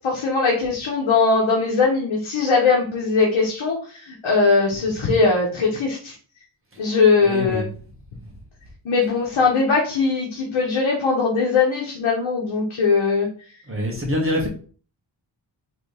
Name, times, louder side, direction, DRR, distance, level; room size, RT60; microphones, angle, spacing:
voice 1, 0.0-6.1 6.8-7.6 8.8-13.3, left 4 dB, 80° left, -2 dB, 1.2 m, -20 dB
voice 2, 7.2-7.7 13.7-14.5, equal, 30° right, -1 dB, 1.5 m, -25 dB
4.0 x 3.4 x 3.3 m, 0.42 s
wide cardioid pair, 135°, 47 cm